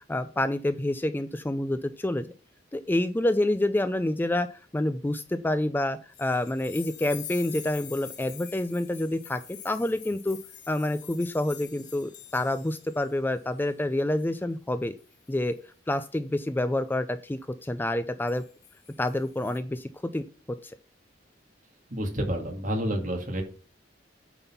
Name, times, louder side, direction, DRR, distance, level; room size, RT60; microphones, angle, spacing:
voice 1, 0.1-2.3 2.7-4.5 4.7-10.4 10.7-15.0 15.3-15.6 15.9-18.4 19.0-20.7, left 1 dB, 10° left, 11 dB, 0.4 m, -28 dB
sound 1, 6.1-13.1 13.4-13.6 15.0-15.3 18.3-19.6, left 10 dB, 65° left, 3.4 m, -45 dB
voice 2, 21.9-23.4, equal, 45° right, 2 dB, 2.2 m, -29 dB
8.9 x 4.1 x 5.6 m, 0.37 s
head